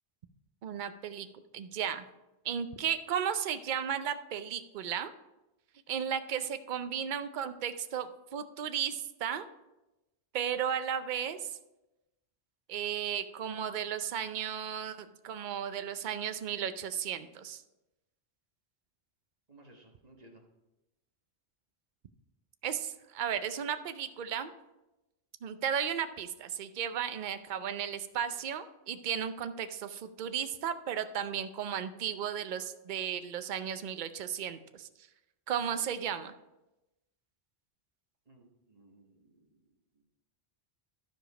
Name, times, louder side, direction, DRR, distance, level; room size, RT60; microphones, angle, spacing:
voice 1, 0.6-1.3 1.5-2.1 2.4-5.1 5.9-9.5 10.3-11.5 12.7-17.6 22.6-24.5 25.4-34.9 35.5-36.3, right 8 dB, 55° right, 10 dB, 0.7 m, -34 dB
voice 2, 19.5-20.4 38.3-39.5 40.0-40.1, right 2 dB, 40° right, 1 dB, 1.4 m, -58 dB
12.5 x 5.1 x 4.9 m, 0.98 s
omnidirectional pair, 1.1 m